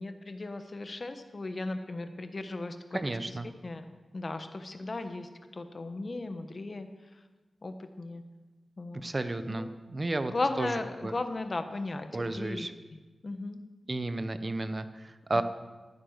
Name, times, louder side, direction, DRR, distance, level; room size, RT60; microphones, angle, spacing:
voice 1, 0.0-3.0 3.3-3.9 4.1-6.9 7.6-8.2 8.8-9.1 9.5-9.7 10.3-12.7 12.9-13.6 15.3-15.4, left 2 dB, 45° left, 8 dB, 1.1 m, -36 dB
voice 2, 2.9-3.5 9.0-11.1 12.1-12.7 13.9-15.4, right 2 dB, 30° right, 10 dB, 0.9 m, -33 dB
13.0 x 9.6 x 6.6 m, 1.3 s
wide cardioid pair, 85°, 0 cm